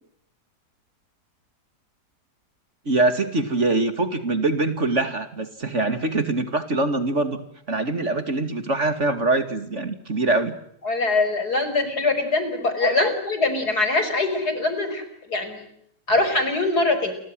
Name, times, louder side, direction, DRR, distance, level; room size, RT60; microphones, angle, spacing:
voice 1, 2.9-7.4 7.7-10.6 12.8-13.1, right 2 dB, 45° right, 10 dB, 2.8 m, -23 dB
voice 2, 10.8-15.0 15.3-15.7 16.1-17.1, left 3 dB, 65° left, 9 dB, 6.2 m, -23 dB
29.5 x 24.0 x 7.8 m, 0.73 s
omnidirectional pair, 1.8 m